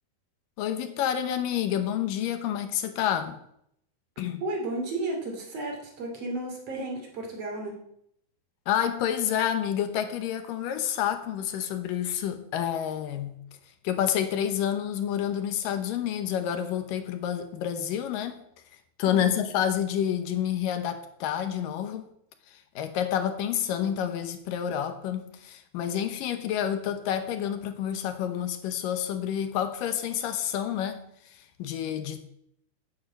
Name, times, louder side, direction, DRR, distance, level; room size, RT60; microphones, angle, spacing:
voice 1, 0.6-3.4 4.2-4.4 8.7-13.4 13.8-18.4 19.0-22.0 22.5-32.2, left 9 dB, 70° left, 2.3 m, -29 dB
voice 2, 4.4-7.8 19.0-19.3, right 2 dB, 40° right, 3.3 m, -33 dB
10.0 x 8.5 x 7.7 m
omnidirectional pair, 4.7 m